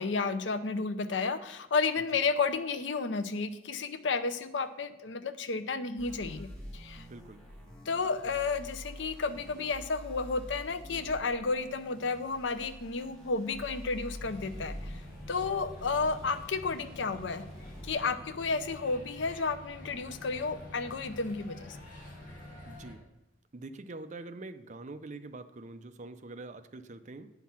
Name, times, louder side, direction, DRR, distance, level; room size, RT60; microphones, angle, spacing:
voice 1, 0.0-7.1 7.9-15.0 15.3-17.5 17.8-21.8, left 4 dB, 90° left, 12 dB, 0.6 m, -32 dB
sound 1, 6.0-17.9, equal, 5° left, 1.9 m, -47 dB
voice 2, 7.0-7.4 22.7-23.1 23.5-27.3, right 2 dB, 40° right, 10 dB, 0.5 m, -45 dB
sound 2, 14.2-22.9, left 1 dB, 50° left, 2.8 m, -48 dB
8.4 x 5.8 x 5.8 m, 0.96 s
head